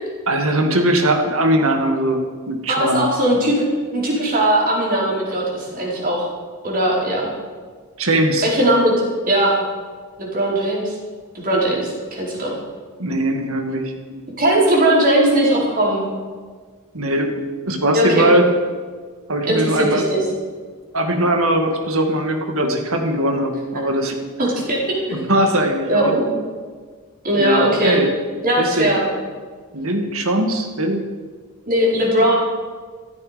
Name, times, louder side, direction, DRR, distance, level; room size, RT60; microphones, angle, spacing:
voice 1, 0.3-3.1 8.0-8.5 13.0-14.2 16.9-17.3 17.7-18.5 19.3-20.1 20.9-24.2 25.1-26.1 27.3-28.1 28.6-29.0 29.7-31.1, right 1 dB, 65° right, 4 dB, 2.1 m, -20 dB
voice 2, 2.7-3.6 3.9-6.3 6.6-7.3 8.4-8.9 9.3-9.5 10.2-10.9 11.3-12.5 14.4-16.1 17.9-18.3 19.5-20.2 24.4-24.8 25.1-25.2 25.9-26.3 27.2-28.0 28.4-29.1 31.7-32.3, right 1 dB, 40° right, -3 dB, 4.6 m, -19 dB
15.5 x 13.5 x 5.2 m, 1.5 s
head